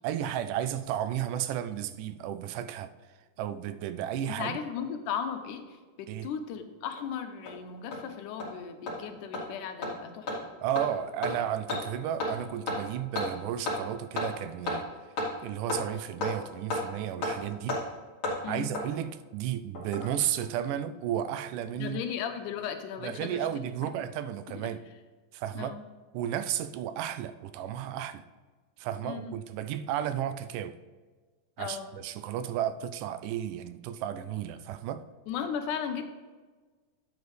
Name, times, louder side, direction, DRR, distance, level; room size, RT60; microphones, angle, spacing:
voice 1, 0.0-2.9 3.4-4.6 6.1-6.3 10.6-14.9 15.4-17.8 18.5-22.0 23.0-24.8 25.3-25.8 26.1-28.2 28.8-30.8 31.6-35.0, right 10 dB, 85° right, 12 dB, 2.1 m, -33 dB
voice 2, 4.3-5.6 6.0-10.3 18.4-18.7 21.8-23.5 25.6-25.8 29.0-29.4 31.6-31.9 35.3-36.1, left 7 dB, 80° left, 7 dB, 2.3 m, -36 dB
Hammer, 7.0-7.1 7.5-7.6 7.9-8.0 8.4-8.5 8.9-9.0 9.3-9.4 9.8-9.9 10.3-10.4 10.8-10.9 11.2-11.3 11.7-11.8 12.2-12.3 12.7-12.8 13.2-13.3 13.7-13.8 14.2-14.3 14.7-14.8 15.2-15.3 15.7-15.8 16.2-16.3 16.7-16.8 17.2-17.3 17.7-17.8 18.2-18.4 18.7-18.8 19.8-20.2 20.4-20.5, left 2 dB, 40° left, 3.1 m, -31 dB
12.0 x 8.1 x 3.3 m, 1.4 s
omnidirectional pair, 3.6 m